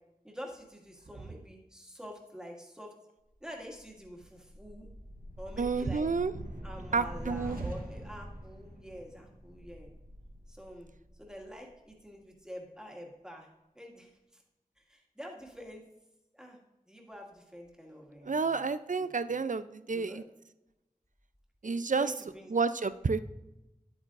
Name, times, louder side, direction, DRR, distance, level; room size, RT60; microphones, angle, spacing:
voice 1, 0.2-2.9 3.4-4.9 5.4-6.1 6.6-9.9 10.5-10.9 11.2-13.5 13.8-14.4 14.8-15.8 16.3-16.6 16.9-18.7 19.0-19.4 19.9-20.2 21.6-22.5, equal, 5° right, -1 dB, 1.9 m, -47 dB
sound 1, 3.5-11.9, equal, 75° right, 1.4 m, -45 dB
voice 2, 5.6-6.3 6.9-7.6 18.2-20.2 21.6-22.1 22.5-23.2, right 4 dB, 60° right, 13 dB, 0.4 m, -30 dB
10.5 x 8.6 x 2.5 m, 0.95 s
wide cardioid pair, 40°, 15 cm